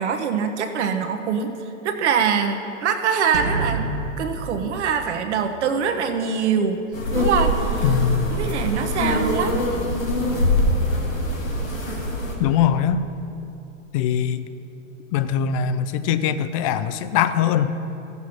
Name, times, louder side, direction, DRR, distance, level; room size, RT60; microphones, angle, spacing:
voice 1, 0.0-1.5 1.8-3.8 4.2-6.9 7.1-7.8 8.3-9.6, right 6 dB, 60° right, 5 dB, 1.2 m, -23 dB
sound 1, 3.3-5.9, right 2 dB, 80° right, 1.9 m, -29 dB
sound 2, 6.9-12.3, left 1 dB, 90° left, 2.8 m, -23 dB
voice 2, 7.8-8.3 12.4-13.0 13.9-14.5 15.1-17.8, left 8 dB, 30° left, 12 dB, 0.4 m, -21 dB
14.5 x 8.1 x 6.1 m, 2.8 s
hypercardioid pair, 125°, 39 cm